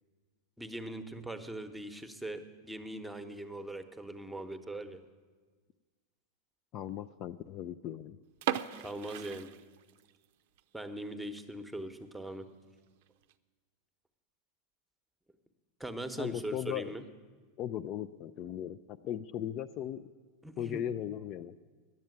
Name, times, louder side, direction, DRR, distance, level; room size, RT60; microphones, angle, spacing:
voice 1, 0.6-5.0 8.8-9.5 10.7-12.5 15.8-17.0 20.4-20.8, right 1 dB, 5° right, 7 dB, 1.0 m, -41 dB
voice 2, 6.7-8.2 16.2-16.9 17.6-20.0 20.6-21.5, left 10 dB, 45° left, 11 dB, 0.4 m, -37 dB
sound 1, 8.3-10.2 10.6-10.7 11.2-11.4 11.8-11.9 12.2-12.3 13.0-13.3, right 11 dB, 65° right, 0.5 m, -37 dB
10.5 x 7.3 x 9.4 m, 1.4 s
hypercardioid pair, 105°, 0 cm